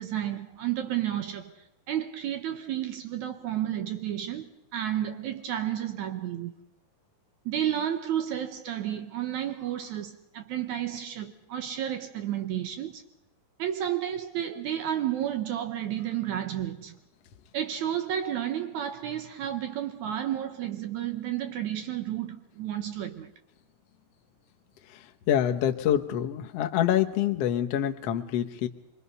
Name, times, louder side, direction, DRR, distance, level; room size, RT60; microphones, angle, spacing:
voice 1, 0.0-1.6 1.9-6.5 7.5-13.0 13.6-16.9 17.5-23.3, right 11 dB, 70° right, 2.0 m, -31 dB
voice 2, 24.9-28.7, left 10 dB, 65° left, 1.5 m, -26 dB
25.5 x 23.0 x 5.5 m
omnidirectional pair, 4.2 m